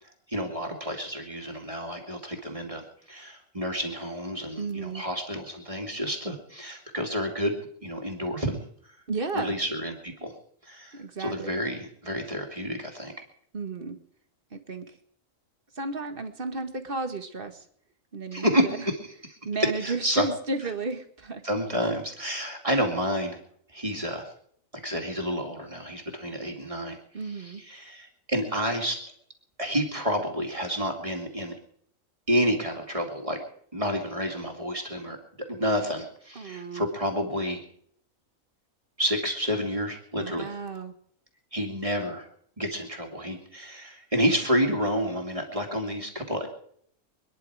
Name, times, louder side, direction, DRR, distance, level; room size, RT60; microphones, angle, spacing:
voice 1, 0.3-7.6 7.8-8.6 9.3-10.3 10.6-13.1 18.3-19.0 19.3-19.4 19.8-20.2 21.4-23.4 23.7-24.3 24.8-27.0 27.4-29.0 29.6-31.5 32.3-33.4 33.7-35.2 35.5-37.6 39.0-40.5 41.5-42.3 42.6-46.5, equal, 25° right, 2 dB, 2.5 m, -29 dB
voice 2, 4.6-5.0 9.1-9.6 10.9-11.6 13.5-14.0 14.5-14.9 15.8-17.6 18.1-18.8 19.4-21.4 27.1-27.6 36.4-36.9 40.2-40.9, right 3 dB, 40° right, 7 dB, 1.7 m, -33 dB
26.0 x 10.5 x 4.9 m, 0.65 s
omnidirectional pair, 1.4 m